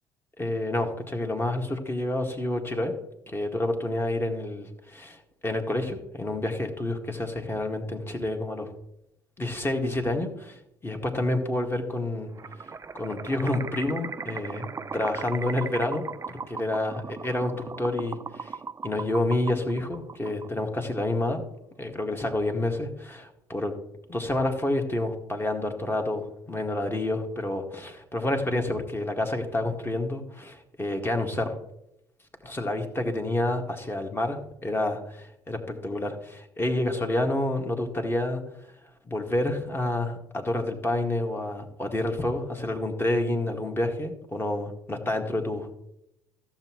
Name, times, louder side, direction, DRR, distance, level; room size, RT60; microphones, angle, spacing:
voice 1, 0.4-2.9 3.3-8.7 9.4-10.6 10.8-12.3 12.6-12.7 12.9-14.7 14.9-18.6 18.8-21.4 21.8-23.7 24.1-31.5 32.4-38.4 39.1-45.7, left 1 dB, 20° left, 4 dB, 1.9 m, -29 dB
sound 1, 12.4-20.8, right 5 dB, 25° right, 0.5 m, -38 dB
14.5 x 7.4 x 3.1 m, 0.81 s
hypercardioid pair, 55°, 13 cm